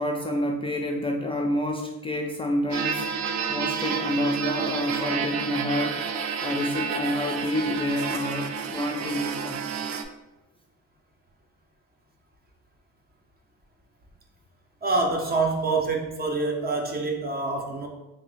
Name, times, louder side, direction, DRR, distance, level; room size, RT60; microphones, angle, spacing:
voice 1, 0.0-3.1 3.5-6.0 6.4-9.6, left 1 dB, 20° left, 1 dB, 0.3 m, -28 dB
sound 1, 2.7-10.0, right 6 dB, 70° right, 0.5 m, -30 dB
voice 2, 14.8-17.9, right 3 dB, 30° right, 2 dB, 0.8 m, -26 dB
3.5 x 2.7 x 3.3 m, 1.0 s
cardioid pair, 90°, 30 cm